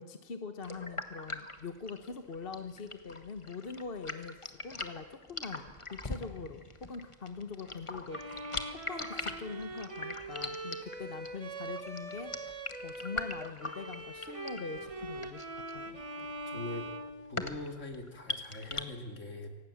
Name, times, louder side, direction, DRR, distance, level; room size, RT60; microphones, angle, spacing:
voice 1, 0.0-5.6 5.9-8.4 8.7-16.0, left 5 dB, 45° left, 8 dB, 1.2 m, -43 dB
sound 1, 0.6-18.8, left 2 dB, 25° left, 1.4 m, -42 dB
Bowed string instrument, 8.1-17.9, right 2 dB, 25° right, 1.4 m, -43 dB
voice 2, 16.2-16.9 17.3-19.5, left 2 dB, 60° left, 4 dB, 2.8 m, -42 dB
25.0 x 18.5 x 7.2 m, 1.3 s
omnidirectional pair, 1.4 m